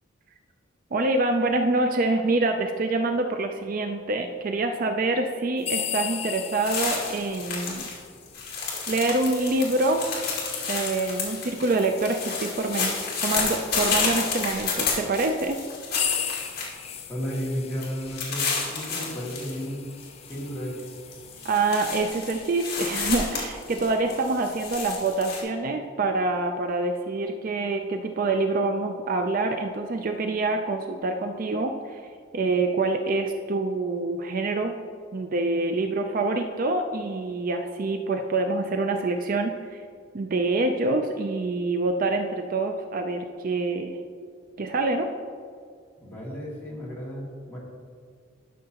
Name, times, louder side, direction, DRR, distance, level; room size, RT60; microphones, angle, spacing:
voice 1, 0.9-7.9 8.9-10.0 10.7-13.0 13.2-15.6 21.4-32.0 32.3-34.8 35.1-39.8 40.1-44.0 44.6-45.1, right 2 dB, 45° right, 5 dB, 0.4 m, -26 dB
sound 1, 5.6-14.0 14.8-14.9 15.6-21.9, left 9 dB, 30° left, 0.5 m, -37 dB
sound 2, 6.6-8.0 8.2-17.0 17.3-17.5 17.8-19.5 19.9-20.4 20.8-25.4, left 4 dB, 50° left, 2.2 m, -31 dB
voice 2, 17.1-19.9 20.3-20.8 46.0-47.6, equal, 10° left, -7 dB, 2.2 m, -33 dB
12.5 x 6.5 x 2.9 m, 2.1 s
head